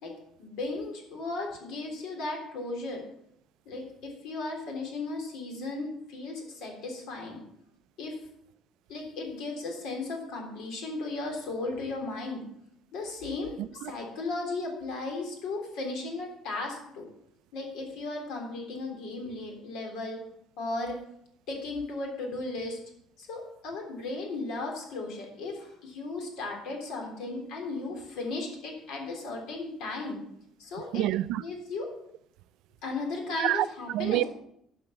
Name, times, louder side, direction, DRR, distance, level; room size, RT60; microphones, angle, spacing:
voice 1, 0.4-3.1 3.7-7.4 8.0-8.2 8.9-12.4 12.9-17.1 17.5-20.2 20.6-21.0 21.5-22.8 23.2-30.2 30.6-31.1 31.4-31.9 32.8-34.3, left 3 dB, 75° left, 3.6 m, -36 dB
voice 2, 13.6-13.9 30.9-31.4 33.4-33.7 33.9-34.2, right 16 dB, 70° right, 0.3 m, -27 dB
11.5 x 5.9 x 7.0 m
cardioid pair, 155°, 0 cm